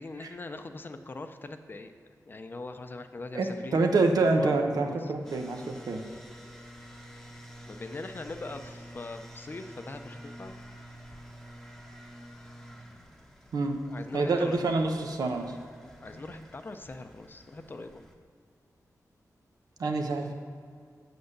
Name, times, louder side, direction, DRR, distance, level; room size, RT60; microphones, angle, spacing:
voice 1, 0.0-1.9 2.3-3.9 4.4-5.1 7.7-10.6 13.9-14.8 16.0-18.0, left 2 dB, 35° left, 8 dB, 0.5 m, -41 dB
voice 2, 3.3-6.0 13.5-13.8 14.1-15.5 19.8-20.3, right 3 dB, 90° right, 4 dB, 1.0 m, -27 dB
sound 1, 5.2-18.1, equal, 5° left, 0.9 m, -49 dB
7.9 x 6.9 x 6.6 m, 2.2 s
wide cardioid pair, 140°, 6 cm